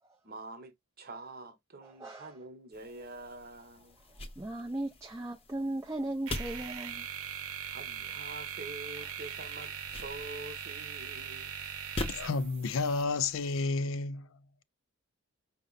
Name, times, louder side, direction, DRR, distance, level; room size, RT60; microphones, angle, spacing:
voice 1, 0.2-4.0 7.7-11.5, right 2 dB, 40° right, 0.9 m, -46 dB
voice 2, 1.8-2.4 4.0-7.1 9.0-9.1, right 1 dB, 15° right, 0.4 m, -38 dB
sound 1, 2.7-13.6, left 2 dB, 25° left, 0.7 m, -45 dB
sound 2, 6.3-13.0, right 8 dB, 70° right, 0.8 m, -41 dB
voice 3, 12.1-14.6, left 3 dB, 60° left, 0.4 m, -31 dB
5.2 x 2.1 x 3.9 m
head